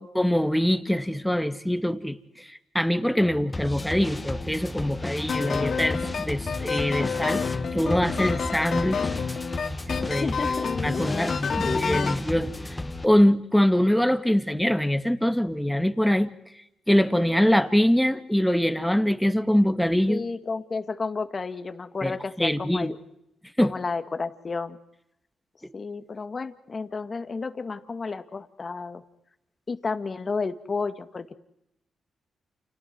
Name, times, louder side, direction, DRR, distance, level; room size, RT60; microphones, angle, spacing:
voice 1, 0.2-2.5 2.7-7.4 7.7-9.1 9.9-10.3 10.8-12.5 13.0-16.3 16.9-20.2 22.0-22.9 23.6-23.7, equal, 5° left, 9 dB, 2.2 m, -23 dB
sound 1, 3.2-13.1, left 2 dB, 20° left, 2.2 m, -34 dB
sound 2, 5.3-12.2, left 5 dB, 60° left, 3.0 m, -29 dB
voice 2, 10.1-11.3 11.6-12.1 20.1-23.0 23.6-24.8 25.7-29.0 29.7-31.3, left 4 dB, 40° left, 9 dB, 2.2 m, -32 dB
30.0 x 29.5 x 4.7 m, 0.85 s
cardioid pair, 65°, 0 cm